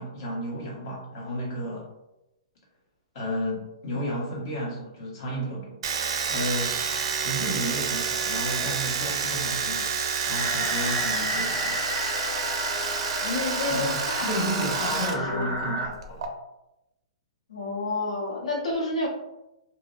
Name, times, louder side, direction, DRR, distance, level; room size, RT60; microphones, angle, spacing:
voice 1, 0.0-1.9 3.1-5.8 6.3-6.8 7.1-9.9 10.3-11.8 13.7-16.3, equal, 50° left, -4 dB, 1.1 m, -32 dB
Domestic sounds home sounds, 5.8-15.2 15.4-16.3, right 6 dB, 55° right, 0.4 m, -29 dB
sound 1, 10.3-15.9, equal, 10° left, 0.4 m, -31 dB
voice 2, 13.2-15.5 17.5-19.1, left 2 dB, 85° left, -3 dB, 0.8 m, -30 dB
2.6 x 2.0 x 2.4 m, 0.92 s
hypercardioid pair, 150°, 4 cm